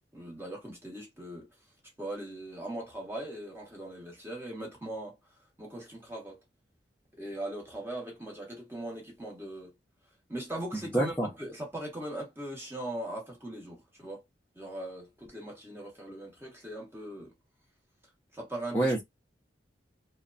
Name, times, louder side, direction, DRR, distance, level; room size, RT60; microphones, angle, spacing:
voice 1, 0.1-1.5 2.0-5.1 5.6-6.4 7.2-9.7 10.3-14.2 14.6-17.3 18.3-18.9, right 1 dB, 15° right, 1.1 m, -40 dB
voice 2, 10.7-11.3 18.7-19.0, right 1 dB, 10° left, 0.6 m, -27 dB
2.9 x 2.2 x 2.4 m
head